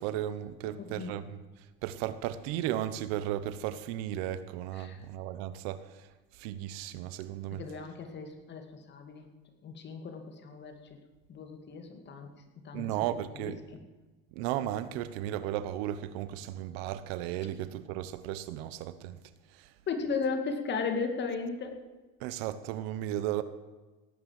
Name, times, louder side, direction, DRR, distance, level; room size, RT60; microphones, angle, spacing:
voice 1, 0.0-1.4 1.8-6.1 6.3-7.6 12.7-13.6 14.3-19.2 19.5-19.7 22.2-23.4, right 12 dB, 85° right, 1.1 m, -35 dB
voice 2, 0.6-1.1 4.7-5.0 7.5-9.3 9.6-11.0 11.3-12.3 12.6-12.9 13.4-13.5 19.9-21.8, left 5 dB, 35° left, 2.4 m, -36 dB
17.0 x 9.1 x 7.6 m
cardioid pair, 130°, 30 cm